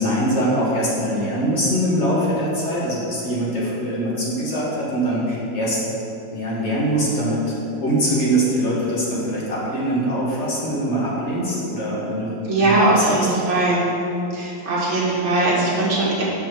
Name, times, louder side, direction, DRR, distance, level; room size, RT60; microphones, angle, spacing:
voice 1, 0.0-5.8 6.3-13.2, equal, 35° left, -6 dB, 1.7 m, -23 dB
voice 2, 12.5-13.8 14.3-16.2, right 2 dB, 75° right, -6 dB, 2.5 m, -20 dB
5.8 x 5.7 x 6.0 m, 2.9 s
omnidirectional pair, 2.2 m